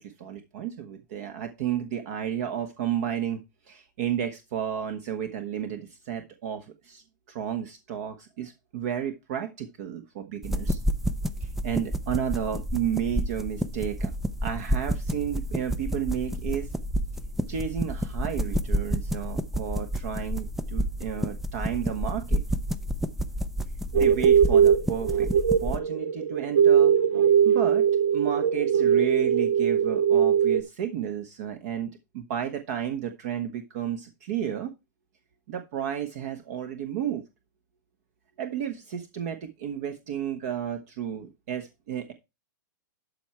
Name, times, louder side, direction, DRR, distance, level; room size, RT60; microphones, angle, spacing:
voice 1, 0.0-3.4 3.7-7.0 7.3-10.8 11.4-14.1 14.4-16.7 17.5-22.4 23.9-25.3 25.6-26.9 27.4-27.9 28.1-34.7 35.5-37.2 38.4-42.1, right 9 dB, 50° right, 7 dB, 1.3 m, -32 dB
sound 1, 10.4-25.8, equal, 5° right, 0.4 m, -30 dB
sound 2, 23.9-30.6, right 8 dB, 70° right, 1.2 m, -21 dB
12.5 x 4.7 x 4.3 m, 0.24 s
hypercardioid pair, 150°, 11 cm